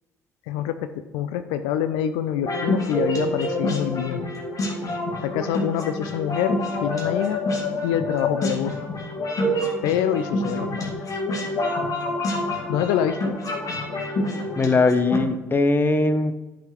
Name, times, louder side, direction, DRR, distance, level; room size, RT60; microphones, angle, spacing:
voice 1, 1.1-4.3 5.2-7.4 7.8-8.7 9.8-11.0 12.7-13.4, left 10 dB, 65° left, 10 dB, 0.4 m, -26 dB
sound 1, 2.4-15.2, left 1 dB, 45° left, 2.0 m, -27 dB
voice 2, 14.6-16.4, left 3 dB, 25° left, 11 dB, 0.7 m, -20 dB
11.5 x 5.9 x 3.1 m, 1.1 s
figure-of-eight pair, 50°, 8 cm